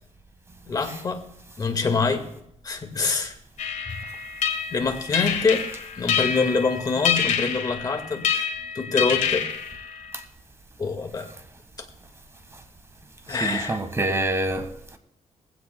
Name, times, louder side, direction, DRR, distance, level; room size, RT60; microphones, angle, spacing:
voice 1, 0.7-1.3 1.6-2.3 2.6-3.4 3.9-4.0 4.7-5.6 6.0-8.5 8.7-9.5 10.8-11.3 11.8-11.9 13.3-13.8, left 4 dB, 30° left, 1.8 m, -25 dB
sound 1, 3.6-10.2, left 7 dB, 70° left, 1.8 m, -27 dB
voice 2, 13.4-15.0, right 2 dB, 20° right, 1.5 m, -27 dB
19.5 x 16.0 x 2.3 m
cardioid pair, 145°, 13 cm